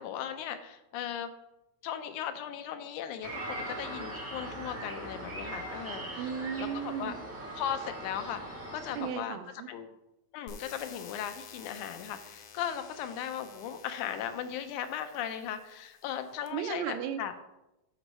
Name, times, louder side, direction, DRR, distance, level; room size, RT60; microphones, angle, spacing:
voice 1, 0.0-1.3 1.8-6.3 6.6-7.2 7.6-9.4 9.7-9.9 10.3-17.3, left 9 dB, 85° left, 9 dB, 2.1 m, -37 dB
sound 1, 3.2-9.1, right 1 dB, 15° right, 0.4 m, -40 dB
voice 2, 6.2-7.2 8.9-9.7 16.5-17.4, right 8 dB, 80° right, 8 dB, 1.7 m, -35 dB
sound 2, 10.5-16.5, left 6 dB, 70° left, 1.5 m, -52 dB
7.9 x 5.4 x 4.2 m, 0.92 s
omnidirectional pair, 3.4 m